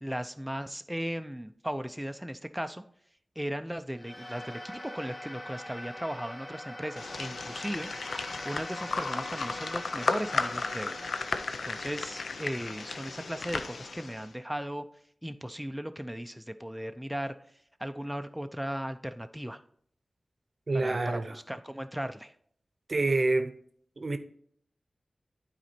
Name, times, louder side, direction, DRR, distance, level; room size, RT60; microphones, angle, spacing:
voice 1, 0.0-2.8 3.4-11.1 11.6-14.9 15.2-17.3 17.8-19.6 20.7-22.3, equal, 5° right, 0.5 m, -37 dB
sound 1, 3.9-14.5, left 1 dB, 35° left, 1.7 m, -44 dB
sound 2, 7.0-14.3, left 4 dB, 80° left, 0.5 m, -34 dB
voice 2, 20.7-21.3 22.9-23.5 24.0-24.2, right 2 dB, 60° right, 0.7 m, -27 dB
9.0 x 4.2 x 4.2 m
cardioid pair, 40°, 0 cm